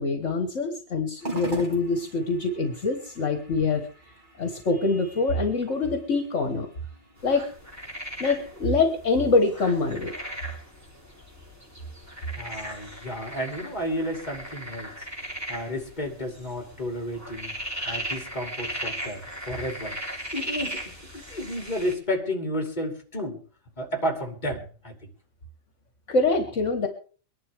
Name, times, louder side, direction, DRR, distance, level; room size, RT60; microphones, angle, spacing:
voice 1, 0.0-3.9 4.4-6.7 7.2-7.5 8.2-10.1 26.1-26.9, left 3 dB, 65° left, 5 dB, 1.8 m, -24 dB
sound 1, 1.2-19.8, right 2 dB, 35° right, 2.7 m, -46 dB
sound 2, 7.2-21.9, equal, 10° right, 3.1 m, -38 dB
voice 2, 12.4-14.9 15.5-17.5 17.9-20.0 20.3-23.4 23.8-24.9, equal, 35° left, 3 dB, 3.0 m, -32 dB
23.5 x 11.0 x 3.5 m, 0.39 s
omnidirectional pair, 1.4 m